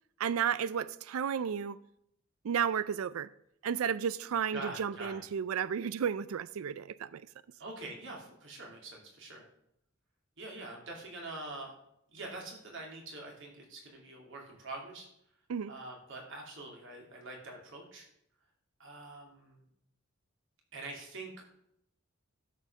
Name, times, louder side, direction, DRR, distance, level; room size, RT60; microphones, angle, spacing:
voice 1, 0.2-1.8 2.4-3.3 3.6-7.3 15.5-15.7, right 7 dB, 85° right, 0.4 m, -33 dB
voice 2, 4.5-5.2 7.6-9.4 10.4-11.7 12.1-15.1 15.7-18.0 18.8-19.6 20.7-21.3, right 2 dB, 65° right, 3.0 m, -45 dB
12.5 x 5.5 x 6.2 m
head